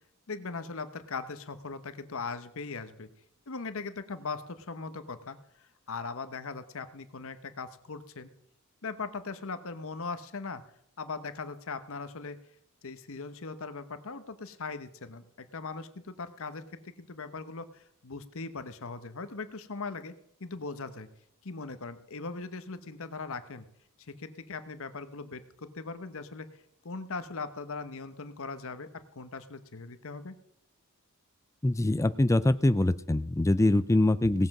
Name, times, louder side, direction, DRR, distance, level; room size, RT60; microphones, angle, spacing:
voice 1, 0.3-3.1 3.5-8.3 8.8-10.6 11.0-12.4 12.8-20.1 20.4-21.1 21.4-23.6 24.1-26.5 26.8-30.4, left 4 dB, 65° left, 11 dB, 1.0 m, -39 dB
voice 2, 31.6-34.5, left 1 dB, 15° left, 13 dB, 0.4 m, -24 dB
17.5 x 7.7 x 6.0 m, 0.73 s
head